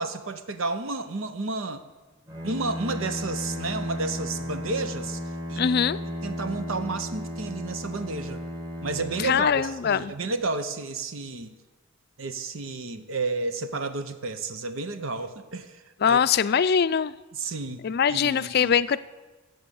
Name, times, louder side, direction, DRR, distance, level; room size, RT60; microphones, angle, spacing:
voice 1, 0.0-1.8 2.4-5.2 5.5-5.8 6.2-8.4 8.8-11.5 12.2-15.8 16.0-16.2 17.3-17.8 18.1-18.7, right 3 dB, 80° right, 10 dB, 0.9 m, -31 dB
Bowed string instrument, 2.3-10.3, equal, 20° right, 1.5 m, -35 dB
voice 2, 5.6-6.0 9.2-10.1 16.0-17.1 17.8-19.0, left 7 dB, 50° left, 15 dB, 0.4 m, -22 dB
13.5 x 7.9 x 7.0 m, 1.2 s
head